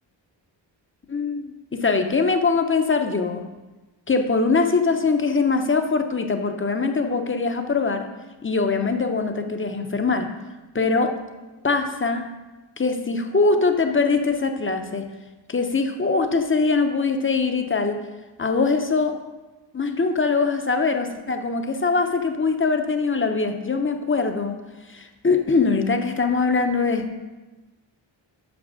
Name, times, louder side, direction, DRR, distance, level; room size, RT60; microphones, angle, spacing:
voice 1, 1.1-3.4 4.1-8.1 8.4-10.3 10.7-11.1 11.6-12.3 12.8-15.1 15.5-18.0 18.4-19.2 19.7-24.6 24.9-27.0, left 4 dB, 25° left, 6 dB, 0.6 m, -22 dB
6.0 x 5.7 x 6.3 m, 1.2 s
wide cardioid pair, 155°, 47 cm